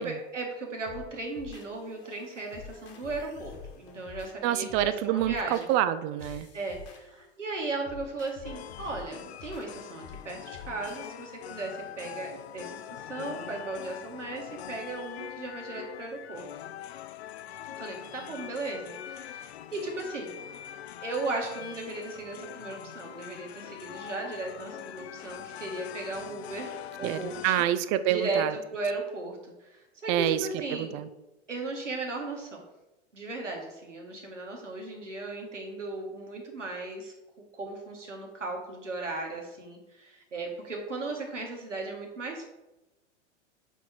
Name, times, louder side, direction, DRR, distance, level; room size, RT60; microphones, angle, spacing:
voice 1, 0.0-5.7 6.3-16.5 17.8-20.3 21.0-27.6 28.1-28.5 28.7-31.0 31.5-32.6 33.1-37.1 37.5-42.5, right 3 dB, 85° right, 1 dB, 1.8 m, -36 dB
sound 1, 0.9-11.1, left 6 dB, 40° left, 1.3 m, -48 dB
voice 2, 4.4-6.5 27.0-28.5 30.1-31.1, right 12 dB, 30° right, 13 dB, 0.4 m, -27 dB
sound 2, 8.4-27.6, left 11 dB, 65° left, 0.5 m, -43 dB
7.2 x 4.2 x 4.4 m, 0.99 s
figure-of-eight pair, 95°, 36 cm